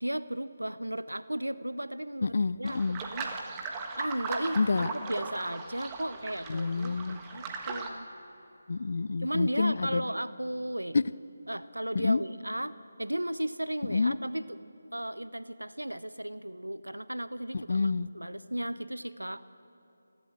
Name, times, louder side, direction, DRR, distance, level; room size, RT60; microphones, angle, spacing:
voice 1, 0.0-2.3 2.6-3.3 4.0-4.6 4.9-8.1 9.2-11.0 11.5-14.6 14.9-19.4, right 1 dB, 90° right, 14 dB, 0.6 m, -35 dB
voice 2, 2.2-3.0 4.6-4.9 6.5-7.2 8.7-10.1 10.9-11.0 11.9-12.2 13.9-14.2 17.5-18.1, left 4 dB, 50° left, 18 dB, 0.4 m, -28 dB
sound 1, 2.6-7.9, right 4 dB, 15° right, 1.5 m, -38 dB
28.5 x 13.0 x 7.6 m, 2.9 s
figure-of-eight pair, 155°, 0 cm